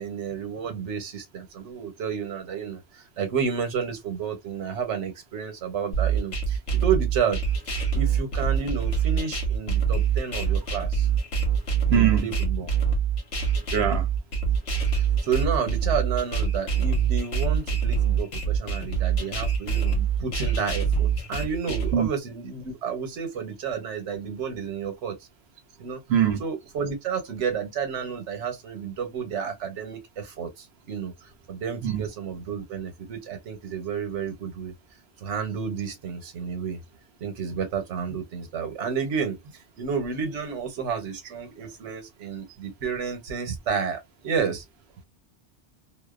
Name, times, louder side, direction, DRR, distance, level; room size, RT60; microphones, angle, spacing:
voice 1, 0.0-7.4 7.9-11.1 11.9-12.7 14.9-25.2 25.8-26.0 26.4-31.1 31.5-34.7 35.2-36.8 37.2-39.4 39.8-44.6, right 6 dB, 90° right, 1.1 m, -31 dB
sound 1, 5.9-21.9, right 6 dB, 80° left, 1.1 m, -25 dB
voice 2, 11.9-12.3 13.7-14.1 21.9-22.1 26.1-26.4 31.8-32.0, right 9 dB, 70° right, 0.8 m, -22 dB
2.5 x 2.1 x 2.3 m
omnidirectional pair, 1.2 m